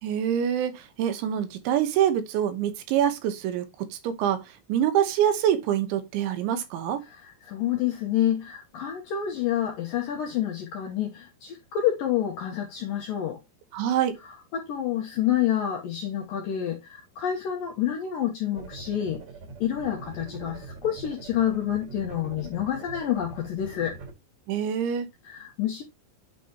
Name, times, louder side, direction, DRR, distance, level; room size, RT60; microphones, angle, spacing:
voice 1, 0.0-7.0 13.7-14.2 24.5-25.1, right 10 dB, 80° right, 3.3 m, -25 dB
voice 2, 7.1-13.4 14.2-19.2 19.6-24.0 25.2-25.8, left 10 dB, 75° left, 2.1 m, -28 dB
sound 1, 18.6-24.1, right 4 dB, 45° right, 2.1 m, -43 dB
9.0 x 5.3 x 2.9 m
omnidirectional pair, 5.3 m